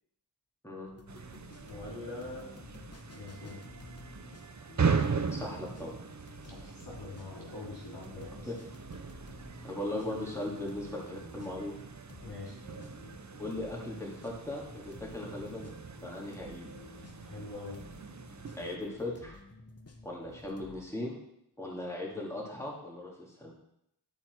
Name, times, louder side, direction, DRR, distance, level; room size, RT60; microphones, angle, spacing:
sound 1, 0.9-20.8, left 2 dB, 40° left, 1.0 m, -52 dB
sound 2, 1.1-18.8, right 5 dB, 45° right, 0.7 m, -39 dB
voice 1, 1.7-2.5 3.1-3.6 6.4-8.5 12.2-12.6 17.2-17.8, left 2 dB, 80° left, -4 dB, 3.2 m, -44 dB
voice 2, 5.3-5.9 8.5-8.6 9.6-11.7 13.4-15.7 16.0-16.7 18.6-19.4 20.0-21.2 21.6-23.5, left 1 dB, 5° left, -3 dB, 2.2 m, -38 dB
11.5 x 4.4 x 4.5 m, 0.79 s
wide cardioid pair, 45°, 40 cm